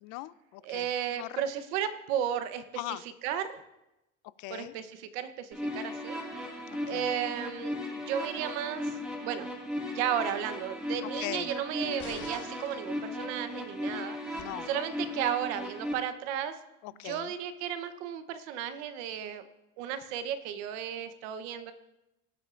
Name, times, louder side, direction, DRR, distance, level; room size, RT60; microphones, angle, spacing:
voice 1, 0.0-0.8 1.2-1.3 2.8-3.0 4.4-4.7 6.7-7.0 11.2-11.5 14.3-14.7 17.0-17.3, left 19 dB, 65° left, 18 dB, 0.5 m, -39 dB
voice 2, 0.6-3.6 4.5-6.2 6.8-8.9 9.2-9.5 9.8-16.6 16.9-19.5 19.8-21.7, right 9 dB, 85° right, 10 dB, 1.0 m, -34 dB
sound 1, 5.5-15.9, left 1 dB, ahead, 2.2 m, -37 dB
sound 2, 12.0-12.8 14.4-14.5, left 5 dB, 35° left, 1.4 m, -46 dB
18.0 x 8.8 x 2.5 m, 0.93 s
cardioid pair, 135°, 33 cm